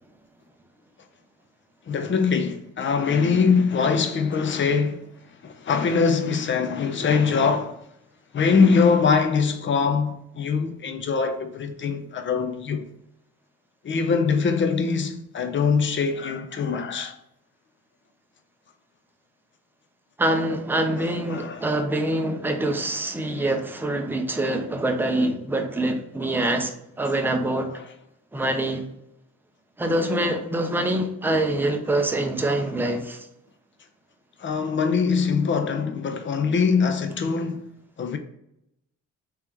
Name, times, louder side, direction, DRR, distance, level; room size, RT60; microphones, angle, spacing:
voice 1, 1.9-5.1 5.4-7.8 8.3-12.9 13.8-17.2 21.3-21.7 34.4-37.7 38.0-38.2, left 5 dB, 40° left, 0.6 m, -23 dB
voice 2, 20.2-27.8 28.3-28.9 29.8-33.3, right 1 dB, 5° right, 0.5 m, -25 dB
3.3 x 3.0 x 3.5 m
cardioid pair, 90°, 30 cm